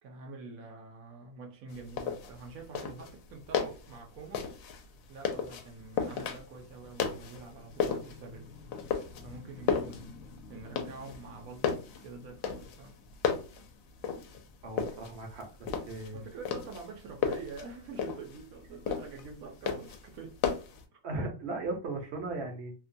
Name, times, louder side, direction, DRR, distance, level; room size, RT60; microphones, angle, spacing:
voice 1, 0.0-4.5 5.1-8.5 9.2-10.1 10.5-13.0 16.1-20.5, right 4 dB, 80° right, 1.0 m, -46 dB
sound 1, 1.7-20.8, left 6 dB, 75° left, 1.0 m, -35 dB
voice 2, 14.6-16.2 21.0-22.7, right 2 dB, 60° right, 0.8 m, -37 dB
2.7 x 2.2 x 2.5 m
omnidirectional pair, 1.5 m